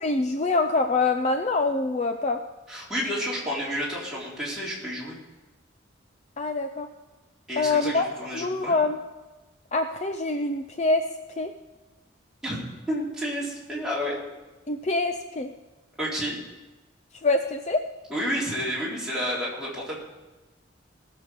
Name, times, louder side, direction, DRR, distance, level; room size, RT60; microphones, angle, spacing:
voice 1, 0.0-2.4 6.4-6.9 7.6-8.1 8.3-9.0 9.7-11.0 11.4-11.5 14.7-15.5 17.2-17.8, left 3 dB, 35° left, 7 dB, 0.5 m, -25 dB
voice 2, 2.7-5.2 7.5-8.7 12.4-12.6 12.9-14.2 16.0-16.4 18.1-20.0, equal, 5° right, -7 dB, 3.7 m, -30 dB
18.0 x 6.7 x 5.1 m, 1.1 s
head